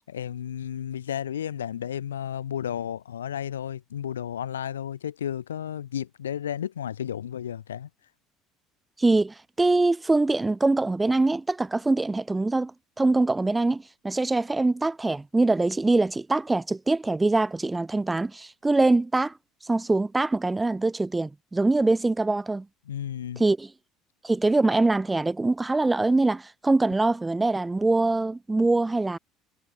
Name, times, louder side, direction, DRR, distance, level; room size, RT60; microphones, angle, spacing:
voice 1, 0.1-7.9 22.9-23.4, left 9 dB, 90° left, 0.6 m, -33 dB
voice 2, 9.0-12.7 13.0-19.3 19.6-22.7 23.4-23.7 24.2-29.2, right 2 dB, 15° right, 1.0 m, -23 dB
hypercardioid pair, 65°, 0 cm